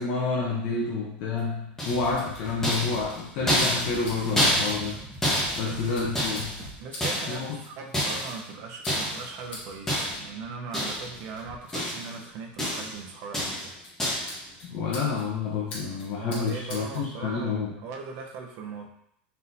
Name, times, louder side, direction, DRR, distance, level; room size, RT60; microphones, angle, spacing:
voice 1, 0.0-5.0 5.6-6.6 7.3-7.6 14.6-17.7, left 4 dB, 50° left, -3 dB, 0.7 m, -29 dB
sound 1, 1.4-17.1, left 2 dB, 85° left, 1.6 m, -47 dB
sound 2, 1.8-2.2 2.6-6.6 7.0-7.5 7.9-8.4 8.9-9.3 9.9-10.4 10.7-11.2 11.5-12.2 12.6-13.0 13.3-13.7 14.0-14.4, equal, 10° left, 1.2 m, -28 dB
sound 3, 1.9-6.7, right 1 dB, 10° right, 1.4 m, -43 dB
voice 2, 5.6-6.0 6.8-13.7 14.3-14.6 16.2-18.9, right 5 dB, 50° right, 1 dB, 0.8 m, -39 dB
4.1 x 3.8 x 2.7 m, 0.75 s
supercardioid pair, 135°, 6 cm